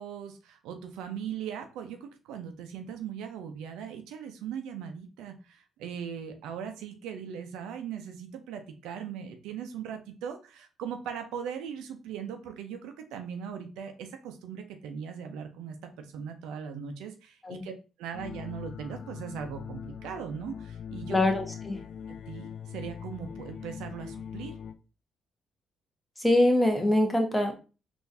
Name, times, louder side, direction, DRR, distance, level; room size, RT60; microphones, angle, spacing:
voice 1, 0.0-17.7 18.0-21.2 22.1-22.5 22.7-24.5, right 7 dB, 85° right, 6 dB, 0.5 m, -39 dB
sound 1, 18.1-24.7, left 8 dB, 65° left, 0.3 m, -41 dB
voice 2, 21.1-21.8 26.2-27.5, left 1 dB, 15° left, 3 dB, 1.0 m, -24 dB
3.8 x 2.5 x 2.6 m, 0.32 s
supercardioid pair, 60°, 0 cm